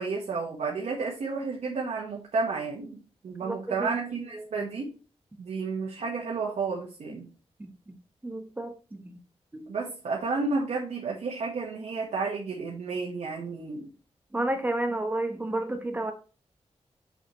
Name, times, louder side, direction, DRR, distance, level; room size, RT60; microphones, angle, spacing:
voice 1, 0.0-4.9 5.4-7.3 9.7-13.9, right 4 dB, 80° right, 1.3 m, -31 dB
voice 2, 3.4-3.7 4.5-4.7 7.6-7.7 8.2-9.0 9.5-9.7 14.3-16.1, right 1 dB, 15° right, 1.0 m, -31 dB
6.4 x 5.9 x 3.1 m
wide cardioid pair, 140°, 11 cm